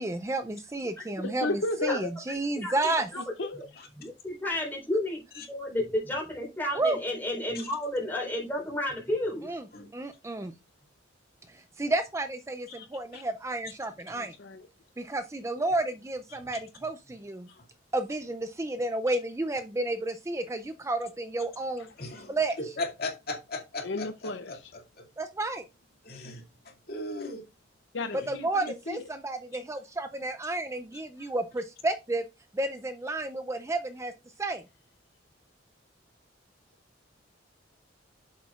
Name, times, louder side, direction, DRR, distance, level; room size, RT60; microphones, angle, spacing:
voice 1, 0.0-3.1 6.7-7.0 9.4-9.7 9.9-10.5 11.5-14.3 15.0-17.5 17.9-21.9 22.3-22.6 25.2-25.6 28.3-32.2 32.5-34.1 34.4-34.6, right 2 dB, 15° right, 0.4 m, -31 dB
voice 2, 1.2-2.1 3.1-3.6 14.1-14.7 21.8-21.9 23.8-24.7 27.9-29.0, left 2 dB, 70° left, 0.7 m, -34 dB
voice 3, 4.0-5.2 5.5-9.5, left 1 dB, 10° left, 3.9 m, -31 dB
voice 4, 22.0-25.1 26.0-27.4 28.2-28.3 31.2-31.3, left 2 dB, 50° left, 2.4 m, -38 dB
8.3 x 7.3 x 2.4 m
head